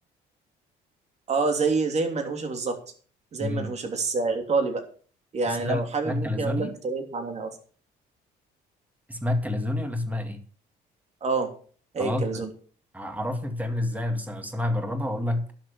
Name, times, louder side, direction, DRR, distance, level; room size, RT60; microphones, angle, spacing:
voice 1, 1.3-2.8 3.3-4.8 5.3-7.5 11.2-11.5 11.9-12.5, right 4 dB, 40° right, 4 dB, 3.1 m, -27 dB
voice 2, 5.5-6.7 9.1-10.4 12.0-12.4 12.9-15.5, left 1 dB, 10° right, 6 dB, 2.4 m, -29 dB
11.5 x 7.1 x 7.1 m, 0.43 s
cardioid pair, 110°, 17 cm